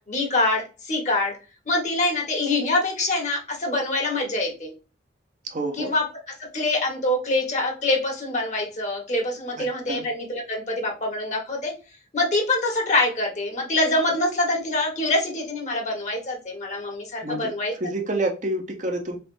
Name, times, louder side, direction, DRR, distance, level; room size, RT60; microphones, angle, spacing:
voice 1, 0.1-1.3 1.7-4.7 5.8-6.0 6.5-11.7 12.1-17.7, left 2 dB, 40° left, 1 dB, 1.4 m, -25 dB
voice 2, 5.4-5.9 9.6-10.1 17.2-17.5 17.8-19.2, right 1 dB, 40° right, 3 dB, 0.7 m, -28 dB
4.0 x 3.4 x 2.6 m, 0.33 s
head